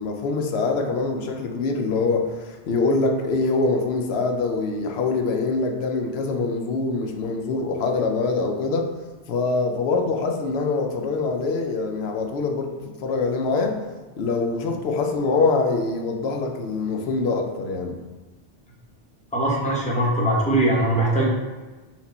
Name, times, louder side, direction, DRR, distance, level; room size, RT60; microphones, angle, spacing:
voice 1, 0.0-8.9 9.3-13.8 14.2-18.0, left 3 dB, 70° left, 3 dB, 0.8 m, -24 dB
voice 2, 19.3-21.2, right 1 dB, 5° left, -5 dB, 0.8 m, -21 dB
4.3 x 2.5 x 4.0 m, 1.2 s
omnidirectional pair, 1.1 m